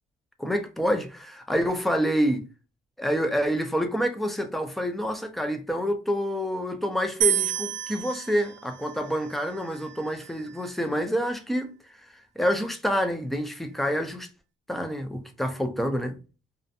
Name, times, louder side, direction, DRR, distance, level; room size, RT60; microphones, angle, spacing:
voice 1, 0.4-2.4 3.0-11.7 12.1-14.3 14.7-16.2, equal, ahead, 0.4 m, -27 dB
sound 1, 7.2-10.4, right 10 dB, 65° right, 0.5 m, -30 dB
2.4 x 2.1 x 2.6 m
cardioid pair, 90°, 20 cm